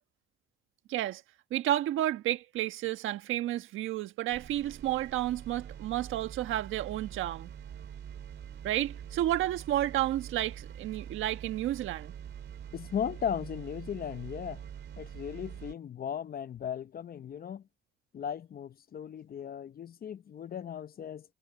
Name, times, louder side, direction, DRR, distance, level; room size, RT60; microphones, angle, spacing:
voice 1, 0.9-1.2 1.5-7.5 8.6-12.1, right 13 dB, 85° right, 1.4 m, -31 dB
sound 1, 4.3-15.7, right 9 dB, 60° right, 4.0 m, -45 dB
voice 2, 12.7-14.6 15.0-17.6 18.1-21.3, left 8 dB, 50° left, 0.8 m, -37 dB
cardioid pair, 90°, 20 cm